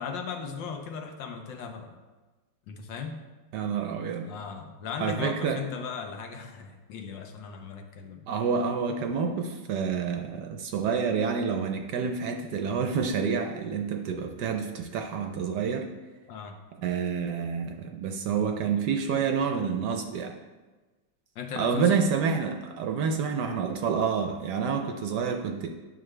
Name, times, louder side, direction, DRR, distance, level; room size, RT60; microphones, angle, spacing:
voice 1, 0.0-1.9 2.7-3.2 4.3-8.3 8.9-9.0 16.3-16.6 21.3-22.1, left 5 dB, 75° left, 4 dB, 1.4 m, -37 dB
voice 2, 3.5-4.3 5.0-5.6 8.3-15.9 16.8-20.3 21.6-25.7, right 6 dB, 70° right, 4 dB, 1.1 m, -28 dB
9.4 x 5.8 x 3.2 m, 1.2 s
omnidirectional pair, 2.1 m